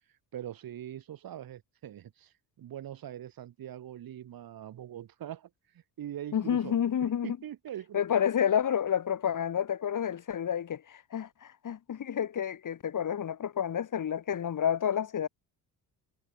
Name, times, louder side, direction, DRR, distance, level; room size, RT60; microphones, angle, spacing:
voice 1, 0.3-6.8 7.2-8.0, right 11 dB, 65° right, 3.7 m, -42 dB
voice 2, 6.3-7.4 7.9-15.3, left 9 dB, 55° left, 3.8 m, -29 dB
cardioid pair, 80°, 38 cm